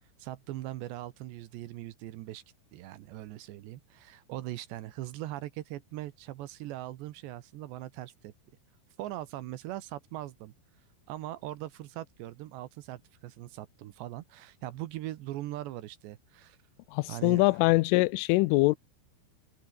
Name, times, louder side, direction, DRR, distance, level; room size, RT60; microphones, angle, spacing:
voice 1, 0.2-2.4 2.7-8.3 9.0-10.5 11.1-16.6 17.1-17.4, right 15 dB, 75° right, 3.0 m, -40 dB
voice 2, 16.9-18.8, left 23 dB, 85° left, 3.1 m, -23 dB
omnidirectional pair, 5.7 m